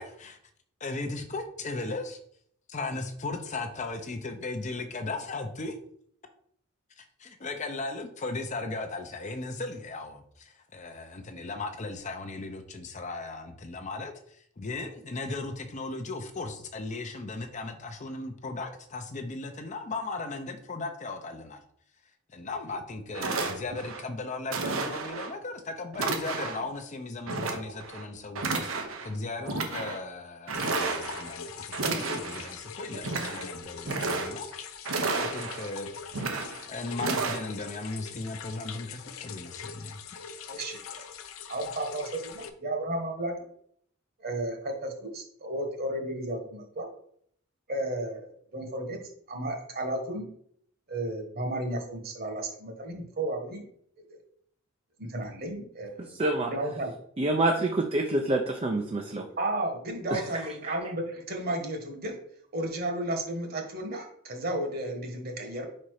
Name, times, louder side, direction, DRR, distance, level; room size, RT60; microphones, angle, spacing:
voice 1, 0.0-0.4 0.8-2.2 2.7-5.7 7.0-21.6 22.3-34.5 35.1-35.9 36.7-40.4, left 3 dB, 35° left, 6 dB, 0.6 m, -37 dB
sound 1, 22.7-22.8 23.1-24.0 24.5-25.3 25.9-26.7 27.3-28.0 28.3-29.1 29.4-30.0 30.5-31.3 31.7-32.5 32.9-33.5 33.8-34.5 34.8-35.7 36.1-36.6 37.0-37.4, right 3 dB, 80° right, 1.0 m, -32 dB
sound 2, 30.5-42.5, left 6 dB, 85° left, 0.6 m, -42 dB
voice 2, 40.5-41.0 41.5-43.3 44.2-46.9 47.7-49.0 49.3-50.3 50.9-53.6 54.1-54.2 55.0-56.2 56.5-56.9 59.4-62.2 62.5-65.7, right 1 dB, 45° right, 3 dB, 1.4 m, -33 dB
voice 3, 56.0-56.5 57.2-59.3 60.1-60.2 60.6-60.7, right 2 dB, 30° right, 3 dB, 0.5 m, -27 dB
5.0 x 4.3 x 4.8 m, 0.66 s
head